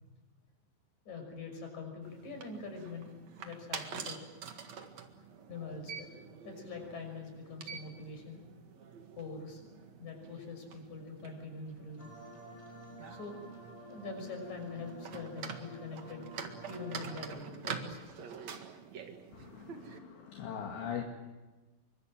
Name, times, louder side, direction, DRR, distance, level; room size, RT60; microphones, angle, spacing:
voice 1, 1.1-3.1 3.4-4.2 5.2-6.1 6.4-8.4 9.2-12.1 13.1-13.4 13.9-16.3 16.7-18.1, left 4 dB, 35° left, 4 dB, 7.1 m, -44 dB
sound 1, 2.0-20.0, right 6 dB, 55° right, 2.1 m, -47 dB
sound 2, 12.0-17.2, right 1 dB, 5° left, 4.5 m, -50 dB
voice 2, 19.3-21.0, left 8 dB, 65° left, 2 dB, 4.2 m, -41 dB
27.0 x 24.0 x 7.7 m, 1.2 s
omnidirectional pair, 5.7 m